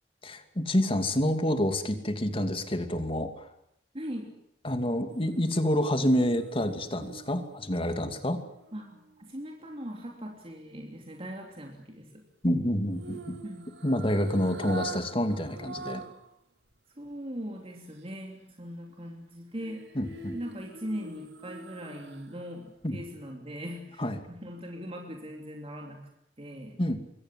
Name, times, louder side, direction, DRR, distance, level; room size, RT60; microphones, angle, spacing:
voice 1, 0.2-3.5 4.6-8.4 12.4-13.4 13.8-16.0 19.9-20.4 22.8-23.0 24.0-24.2 26.8-27.0, equal, 30° left, 7 dB, 2.7 m, -28 dB
voice 2, 3.9-4.3 8.7-12.2 13.4-13.7 17.0-19.8 20.3-26.0 26.4-26.8, equal, 35° right, 1 dB, 3.3 m, -40 dB
sound 1, 5.1-9.3 12.9-16.3 16.7-16.8 19.6-22.5 22.8-22.9, right 3 dB, 75° right, 3.1 m, -44 dB
26.5 x 23.0 x 7.7 m, 0.75 s
head